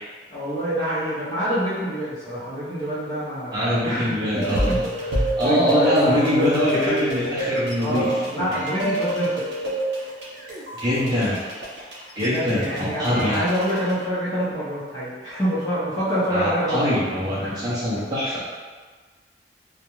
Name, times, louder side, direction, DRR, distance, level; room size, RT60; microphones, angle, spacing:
voice 1, 0.3-6.5 7.8-9.5 12.2-16.9 17.4-17.6, equal, 20° left, -12 dB, 0.7 m, -27 dB
voice 2, 3.5-4.7 5.4-8.2 8.5-8.6 10.8-11.4 12.2-13.4 16.3-18.4, left 1 dB, 20° right, -11 dB, 0.6 m, -23 dB
sound 1, 4.4-13.9, right 1 dB, 85° right, 0.7 m, -28 dB
2.4 x 2.1 x 3.0 m, 1.4 s
head